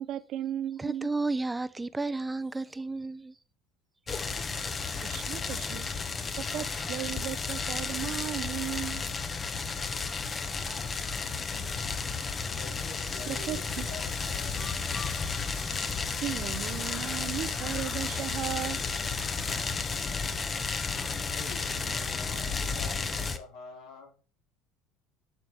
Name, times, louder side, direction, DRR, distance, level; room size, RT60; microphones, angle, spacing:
voice 1, 0.0-1.1 5.0-5.9 6.4-9.0 13.3-13.9 16.2-18.9, right 12 dB, 60° right, 0.7 m, -36 dB
voice 2, 0.8-3.4, right 3 dB, 15° right, 0.6 m, -32 dB
sound 1, 4.1-23.4, left 5 dB, 30° left, 0.9 m, -33 dB
voice 3, 12.5-15.1 21.3-24.2, left 3 dB, 75° left, 4.5 m, -47 dB
Rain, 12.7-20.1, left 6 dB, 55° left, 2.2 m, -46 dB
11.0 x 4.4 x 3.2 m
supercardioid pair, 85°, 0 cm